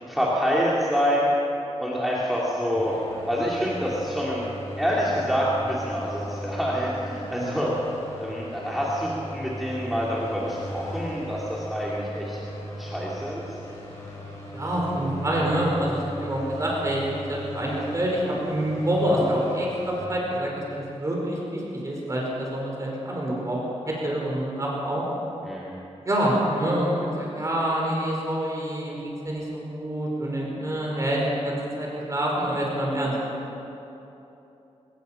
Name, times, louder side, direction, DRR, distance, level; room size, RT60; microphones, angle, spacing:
voice 1, 0.1-1.3 1.8-2.9 3.3-4.5 4.8-7.7 8.2-12.4 12.8-13.4 25.4-25.7, equal, ahead, -6 dB, 2.6 m, -26 dB
sound 1, 2.7-20.0, equal, 25° left, 6.3 m, -38 dB
voice 2, 14.5-23.6 23.9-25.0 26.0-33.1, right 1 dB, 30° right, -3 dB, 4.8 m, -27 dB
24.5 x 19.5 x 5.8 m, 3.0 s
wide cardioid pair, 165°, 12 cm